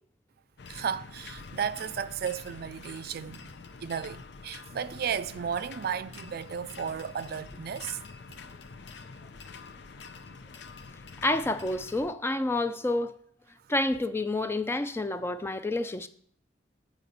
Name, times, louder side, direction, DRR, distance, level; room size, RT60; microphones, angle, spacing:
sound 1, 0.6-12.1, left 4 dB, 70° left, 0.6 m, -46 dB
voice 1, 0.7-3.5 3.8-8.0, right 7 dB, 60° right, 0.4 m, -34 dB
voice 2, 11.2-13.1 13.7-16.1, left 2 dB, 15° left, 0.4 m, -29 dB
8.2 x 5.1 x 5.3 m
head